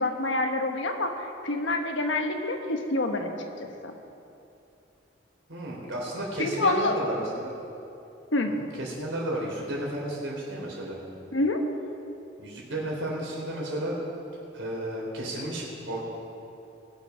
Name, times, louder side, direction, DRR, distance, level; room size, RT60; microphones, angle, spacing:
voice 1, 0.0-3.3 3.8-3.9 6.4-6.9 8.3-8.5 11.3-11.6, left 2 dB, 75° left, 4 dB, 1.3 m, -27 dB
voice 2, 5.5-7.5 8.5-11.0 12.4-14.0 14.5-16.0, right 1 dB, 85° right, -3 dB, 3.7 m, -33 dB
20.0 x 7.2 x 5.8 m, 2.8 s
head